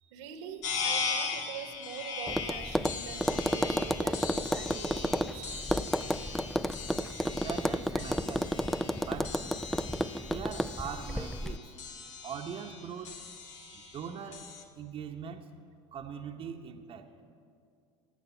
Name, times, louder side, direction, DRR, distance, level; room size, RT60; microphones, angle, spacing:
voice 1, 0.1-6.4 7.9-8.0 13.6-14.0, right 7 dB, 75° right, 7 dB, 1.4 m, -45 dB
sound 1, 0.6-14.6, left 5 dB, 80° left, 1.5 m, -39 dB
Tap, 2.3-11.6, equal, ahead, 0.4 m, -32 dB
voice 2, 7.4-8.5 9.0-9.3 10.2-11.6 12.2-13.1 13.7-14.5 14.8-15.4 15.9-17.1, right 7 dB, 40° right, 4 dB, 1.0 m, -41 dB
18.0 x 8.1 x 7.2 m, 2.4 s
hypercardioid pair, 85°, 15 cm